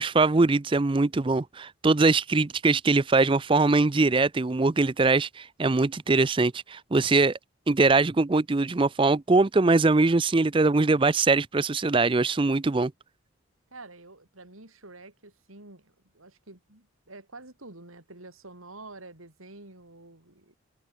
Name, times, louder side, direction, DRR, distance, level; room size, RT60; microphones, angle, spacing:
voice 1, 0.0-7.4 7.7-12.9, right 3 dB, 25° right, 0.4 m, -22 dB
voice 2, 13.7-20.6, right 2 dB, 85° right, 5.0 m, -48 dB
head